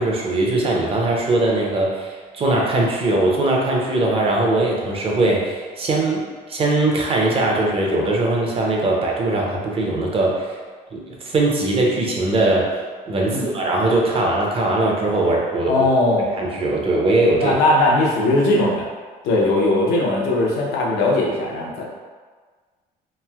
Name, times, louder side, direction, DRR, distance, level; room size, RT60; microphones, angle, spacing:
voice 1, 0.0-2.1 2.3-10.5 10.9-12.7 13.1-15.7 16.4-17.5, right 2 dB, 35° right, -2 dB, 0.6 m, -20 dB
voice 2, 15.7-16.3 17.4-18.9 19.2-21.8, left 2 dB, 90° left, -2 dB, 0.7 m, -19 dB
3.1 x 2.5 x 2.3 m, 1.5 s
cardioid pair, 110°, 17 cm